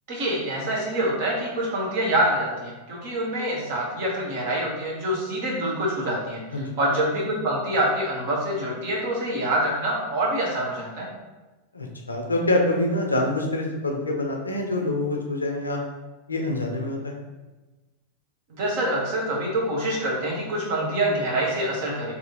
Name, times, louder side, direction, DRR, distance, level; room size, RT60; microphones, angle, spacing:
voice 1, 0.1-11.1 18.5-22.1, right 1 dB, 50° right, -3 dB, 1.2 m, -26 dB
voice 2, 11.7-15.8 16.3-17.2, left 1 dB, 80° left, 1 dB, 0.6 m, -26 dB
3.3 x 2.8 x 3.9 m, 1.2 s
figure-of-eight pair, 90°, 0 cm